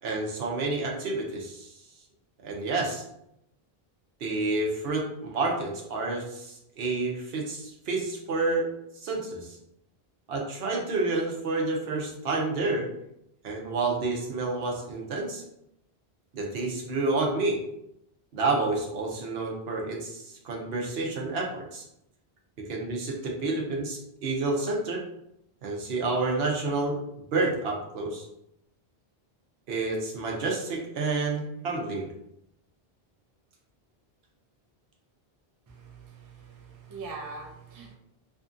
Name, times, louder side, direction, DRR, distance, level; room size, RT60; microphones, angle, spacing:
voice 1, 0.0-1.7 2.4-3.0 4.2-8.7 9.0-9.6 10.3-12.9 13.4-15.4 16.3-17.6 18.3-21.8 22.7-25.0 25.6-27.0 27.3-28.3 29.7-32.1, right 3 dB, 75° right, 0 dB, 0.9 m, -29 dB
voice 2, 35.7-37.9, right 3 dB, 35° right, 0 dB, 0.3 m, -42 dB
2.6 x 2.5 x 2.4 m, 0.79 s
omnidirectional pair, 1.0 m